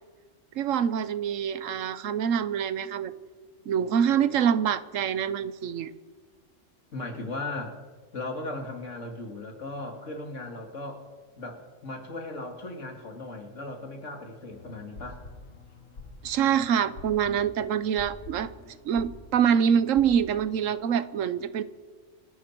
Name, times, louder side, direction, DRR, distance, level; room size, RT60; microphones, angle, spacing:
voice 1, 0.5-3.1 3.7-5.9 16.2-21.6, right 8 dB, 80° right, 15 dB, 1.1 m, -25 dB
voice 2, 6.9-7.8 8.1-11.1 11.4-15.2, left 2 dB, 70° left, 3 dB, 2.5 m, -37 dB
sound 1, 14.5-21.1, left 2 dB, 90° left, 2.1 m, -47 dB
27.5 x 11.5 x 4.5 m, 1.4 s
omnidirectional pair, 1.3 m